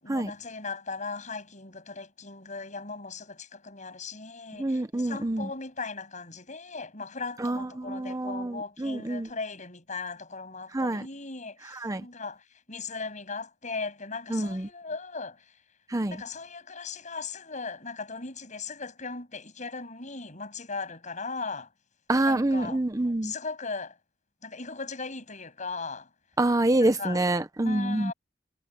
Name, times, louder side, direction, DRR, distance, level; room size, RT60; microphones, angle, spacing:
voice 1, 0.0-15.4 16.1-21.7 22.3-22.8 23.2-24.0 24.4-26.1 27.0-27.2 27.6-28.1, left 4 dB, 45° left, 7.3 m, -38 dB
voice 2, 4.6-5.5 7.4-9.3 10.7-11.0 11.6-12.1 14.3-14.7 15.9-16.2 22.1-23.3 26.4-28.1, right 1 dB, 20° right, 0.7 m, -27 dB
head